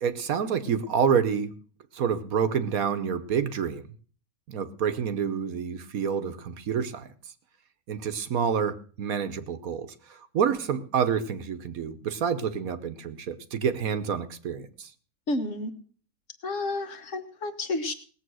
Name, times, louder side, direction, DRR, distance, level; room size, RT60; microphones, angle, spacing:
voice 1, 0.0-1.5 1.9-3.9 4.5-7.1 7.9-14.9, right 7 dB, 60° right, 11 dB, 1.3 m, -28 dB
voice 2, 15.3-15.7 16.4-17.9, left 2 dB, 50° left, 7 dB, 1.7 m, -30 dB
19.0 x 7.8 x 6.2 m, 0.44 s
omnidirectional pair, 1.8 m